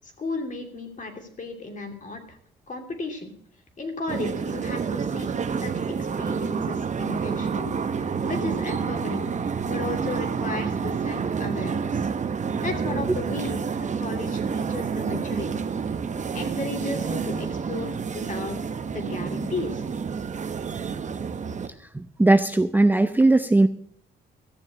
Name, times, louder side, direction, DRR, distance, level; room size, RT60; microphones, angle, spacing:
voice 1, 0.0-2.4 2.7-3.3 3.8-5.3 5.6-5.7 6.0-7.7 8.0-9.3 9.7-12.1 12.6-15.6 16.3-18.6 18.9-19.9, left 3 dB, 40° left, 4 dB, 2.9 m, -34 dB
sound 1, 4.1-21.7, right 6 dB, 35° right, 0.9 m, -29 dB
voice 2, 21.9-23.7, right 2 dB, 10° right, 9 dB, 0.6 m, -18 dB
14.0 x 7.1 x 7.6 m, 0.63 s
cardioid pair, 90°, 20 cm